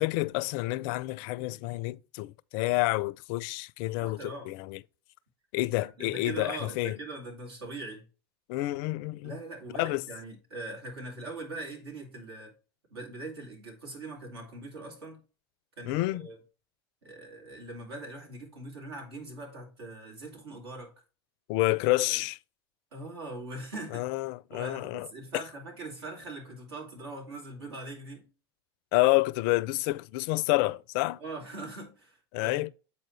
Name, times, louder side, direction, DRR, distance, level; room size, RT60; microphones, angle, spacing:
voice 1, 0.0-4.8 5.5-7.0 8.5-9.4 9.8-10.1 15.8-16.3 21.5-22.4 23.9-25.1 25.3-25.4 28.9-31.2 32.3-32.7, left 20 dB, 55° left, 0.4 m, -29 dB
voice 2, 4.0-4.5 6.0-8.1 9.2-12.5 12.9-15.2 15.8-16.4 17.0-20.9 22.0-22.2 22.9-24.1 24.5-28.3 31.2-32.7, right 2 dB, 80° right, 2.7 m, -41 dB
7.8 x 4.2 x 3.2 m
hypercardioid pair, 90°, 13 cm